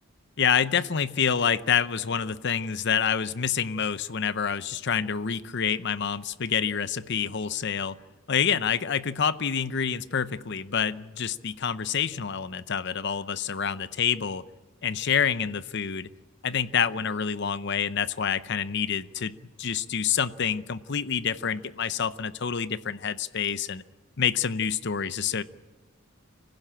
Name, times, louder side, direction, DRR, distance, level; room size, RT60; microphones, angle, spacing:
voice 1, 0.4-8.0 8.3-14.4 14.8-16.1 16.4-23.8 24.2-25.4, left 7 dB, 60° left, 14 dB, 0.7 m, -27 dB
25.0 x 16.0 x 8.7 m, 1.2 s
head